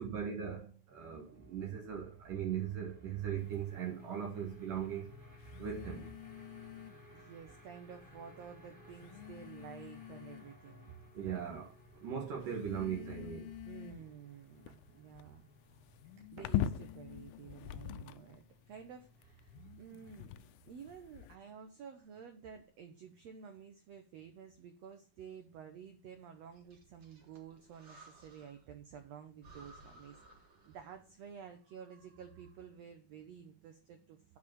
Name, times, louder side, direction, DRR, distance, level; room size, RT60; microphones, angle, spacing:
voice 1, 0.0-5.1 5.6-6.1 11.1-11.7 12.0-13.5, right 8 dB, 65° right, 3.0 m, -39 dB
sound 1, 0.9-20.3, left 2 dB, 15° right, 2.1 m, -59 dB
sound 2, 3.4-3.6 5.4-7.2 8.2-8.3 8.9-10.7 11.2-11.7 12.4-18.5 19.2-21.4, left 11 dB, 85° left, 2.4 m, -43 dB
voice 2, 7.1-10.9 11.2-11.4 13.6-15.4 16.3-34.4, right 7 dB, 85° right, 1.5 m, -52 dB
Breathing, 26.5-28.7 29.0-29.1 29.4-31.1, right 2 dB, 40° right, 1.8 m, -59 dB
8.3 x 4.9 x 7.3 m
omnidirectional pair, 4.2 m